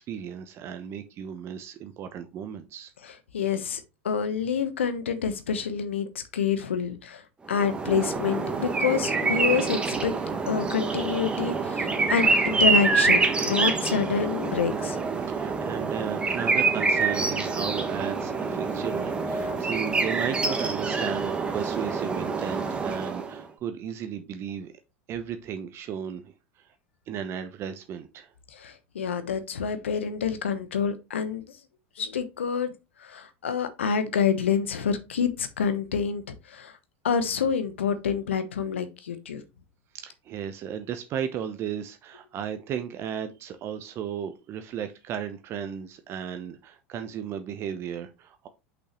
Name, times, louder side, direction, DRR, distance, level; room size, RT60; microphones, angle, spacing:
voice 1, 0.0-2.9 3.4-3.6 15.3-24.7 25.1-26.7 27.1-28.3 39.9-48.5, right 8 dB, 40° right, 0.8 m, -35 dB
voice 2, 3.3-7.2 7.5-10.1 10.5-15.0 19.4-19.5 28.5-31.4 32.0-32.7 33.0-36.2 36.5-36.7 37.0-39.4, left 7 dB, 80° left, 1.0 m, -27 dB
sound 1, 7.5-23.4, right 4 dB, 15° right, 1.2 m, -26 dB
6.3 x 5.5 x 3.0 m
hypercardioid pair, 85°, 6 cm